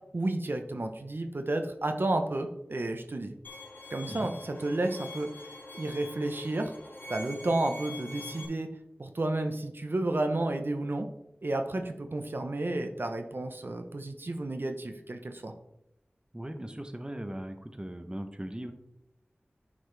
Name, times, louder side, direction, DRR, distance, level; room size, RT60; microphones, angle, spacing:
voice 1, 0.1-3.3 3.9-5.3 5.7-6.7 7.1-8.7 9.0-11.1 11.4-15.5, right 2 dB, 60° right, 6 dB, 0.8 m, -31 dB
Bowed string instrument, 3.4-8.4, left 2 dB, 55° left, 1.7 m, -45 dB
voice 2, 16.3-18.7, right 1 dB, 20° right, 6 dB, 0.8 m, -39 dB
9.6 x 5.1 x 3.3 m, 0.82 s
wide cardioid pair, 55°, 4 cm